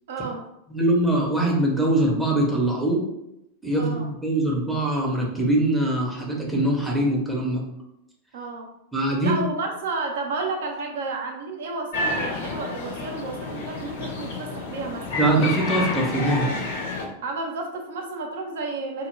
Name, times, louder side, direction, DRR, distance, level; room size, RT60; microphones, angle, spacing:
voice 1, 0.1-0.5 3.8-4.1 8.3-8.7 9.2-15.1 17.2-19.1, right 3 dB, 60° right, 3 dB, 0.4 m, -31 dB
voice 2, 0.7-3.0 3.6-7.6 8.9-9.4 15.1-16.7, right 1 dB, ahead, -2 dB, 0.6 m, -23 dB
sound 1, 11.9-17.1, left 2 dB, 55° left, 0.5 m, -29 dB
2.2 x 2.1 x 3.1 m, 0.84 s
figure-of-eight pair, 90°, 0 cm